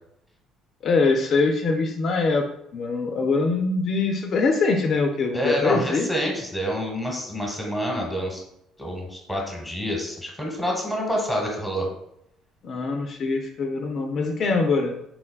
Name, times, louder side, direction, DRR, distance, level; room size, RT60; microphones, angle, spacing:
voice 1, 0.8-2.4 2.7-6.1 12.6-15.0, left 3 dB, 50° left, 3 dB, 0.3 m, -23 dB
voice 2, 5.3-8.4 8.8-11.9, equal, ahead, -1 dB, 1.0 m, -27 dB
3.7 x 2.2 x 2.3 m, 0.77 s
supercardioid pair, 85°, 0 cm